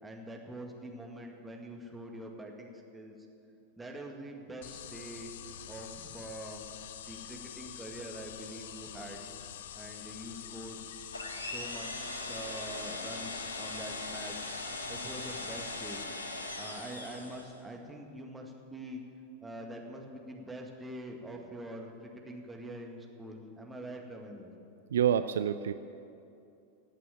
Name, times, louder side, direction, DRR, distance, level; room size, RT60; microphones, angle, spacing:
voice 1, 0.0-3.2 3.8-5.3 5.7-6.6 7.1-9.2 9.7-10.8 11.4-14.5 14.9-16.0 16.3-19.0 19.4-24.5, right 1 dB, 10° right, 1 dB, 2.0 m, -44 dB
sound 1, 4.6-16.0, left 10 dB, 55° left, 0.5 m, -46 dB
sound 2, 11.1-17.6, left 2 dB, 80° left, 1.3 m, -40 dB
voice 2, 24.9-25.7, right 9 dB, 65° right, 12 dB, 0.4 m, -27 dB
15.5 x 8.3 x 9.0 m, 2.7 s
figure-of-eight pair, 90°, 0 cm